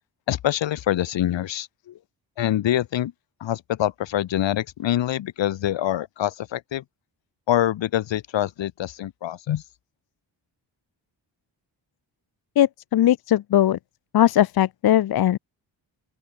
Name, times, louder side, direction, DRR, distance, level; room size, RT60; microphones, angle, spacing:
voice 1, 0.3-1.7 2.4-3.1 3.4-6.8 7.5-9.6, left 12 dB, 75° left, 1.3 m, -25 dB
voice 2, 12.6-13.8 14.1-15.4, left 12 dB, 55° left, 0.6 m, -19 dB
open air
cardioid pair, 65°, 45 cm